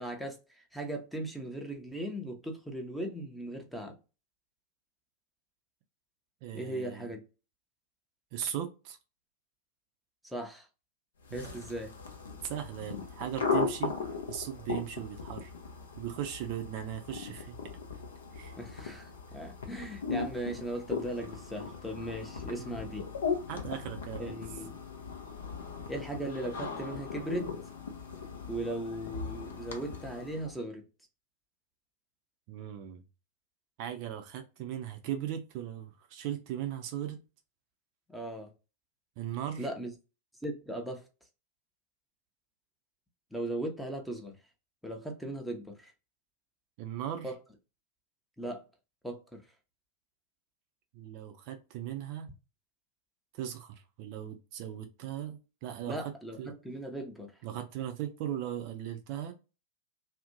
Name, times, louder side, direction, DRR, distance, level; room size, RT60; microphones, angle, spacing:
voice 1, 0.0-4.0 6.5-7.2 10.2-10.7 11.3-11.9 18.6-23.1 24.2-24.8 25.9-27.5 28.5-30.9 38.1-38.5 39.6-39.9 40.4-41.0 43.3-44.4 44.8-45.9 47.2-47.4 48.4-48.6 49.0-49.4 55.9-57.4, right 1 dB, ahead, 0.6 m, -38 dB
voice 2, 6.4-7.1 8.3-9.0 11.3-11.6 12.4-13.9 14.3-15.5 16.0-17.6 18.3-18.5 22.6-22.9 23.5-24.4 32.5-33.0 33.8-37.2 39.2-39.7 46.8-47.3 50.9-52.3 53.4-56.1 56.4-56.5 57.4-59.3, right 11 dB, 45° right, 0.4 m, -38 dB
sound 1, 11.2-30.6, left 5 dB, 65° left, 0.5 m, -38 dB
2.5 x 2.1 x 2.7 m
figure-of-eight pair, 90°, 0 cm